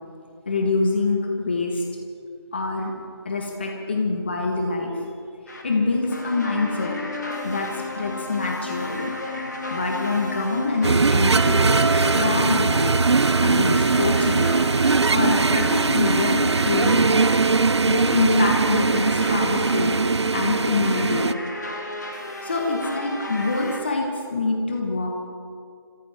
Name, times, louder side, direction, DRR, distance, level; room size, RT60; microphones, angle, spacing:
voice 1, 0.5-1.8 2.5-2.9 3.2-4.9 5.6-6.9 7.4-9.1 9.7-13.0 13.4-14.5 15.1-17.2 17.9-20.0 20.3-21.3 22.4-25.1, left 3 dB, 25° left, 1 dB, 1.3 m, -25 dB
sound 1, 5.5-23.8, left 2 dB, 40° left, 1.7 m, -33 dB
sound 2, 10.8-21.3, right 4 dB, 90° right, 0.5 m, -20 dB
26.0 x 15.5 x 3.5 m, 2.3 s
figure-of-eight pair, 175°, 14 cm